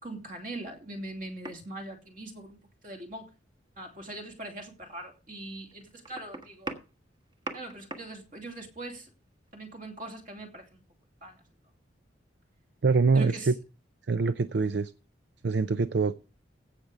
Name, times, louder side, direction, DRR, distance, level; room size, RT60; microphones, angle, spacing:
voice 1, 0.0-3.3 3.8-6.8 7.5-9.1 9.5-10.8 11.2-11.4 13.1-13.5, right 2 dB, 45° right, 2.8 m, -41 dB
sound 1, 1.2-1.7 3.8-4.0 4.6-4.7 5.7-8.2 9.5-9.6, right 2 dB, 25° right, 1.4 m, -41 dB
voice 2, 12.8-13.5 14.1-14.9 15.4-16.1, right 4 dB, 65° right, 0.5 m, -24 dB
16.0 x 6.7 x 4.9 m
head